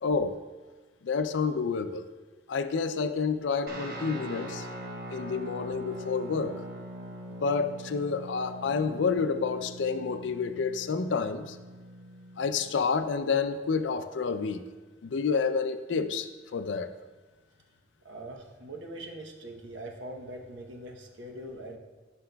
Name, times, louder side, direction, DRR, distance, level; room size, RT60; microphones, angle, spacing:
voice 1, 0.0-0.4 1.0-2.1 2.5-4.7 5.1-6.6 7.3-11.6 12.4-14.6 15.0-16.9, left 5 dB, 75° left, 10 dB, 0.4 m, -29 dB
Guitar, 3.7-12.8, equal, 55° right, 1.1 m, -42 dB
voice 2, 18.0-21.8, right 1 dB, 75° right, 2 dB, 0.9 m, -42 dB
11.5 x 5.8 x 2.3 m, 1.3 s
head